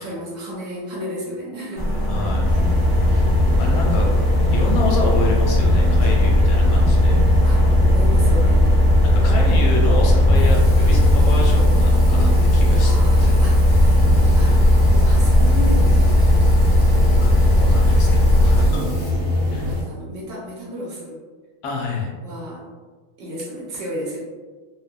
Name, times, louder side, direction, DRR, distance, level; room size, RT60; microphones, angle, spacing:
voice 1, 0.0-2.0 7.4-8.6 12.8-16.6 17.8-18.2 19.7-21.2 22.2-22.7 23.2-24.2, equal, 70° right, -4 dB, 1.2 m, -33 dB
sound 1, 1.8-18.7, left 1 dB, 60° left, 0.3 m, -16 dB
voice 2, 2.1-2.5 3.1-3.3 3.6-4.1 4.5-7.2 9.0-13.3 17.2-18.8 19.5-19.6 21.6-22.1, left 2 dB, 85° left, -1 dB, 1.4 m, -28 dB
sound 2, 2.4-19.8, left 1 dB, 85° right, 1.5 m, -24 dB
Water tap faucet / Sink (filling or washing), 10.3-19.1, left 2 dB, 40° left, 1.1 m, -43 dB
3.6 x 2.1 x 2.4 m, 1.4 s
omnidirectional pair, 2.2 m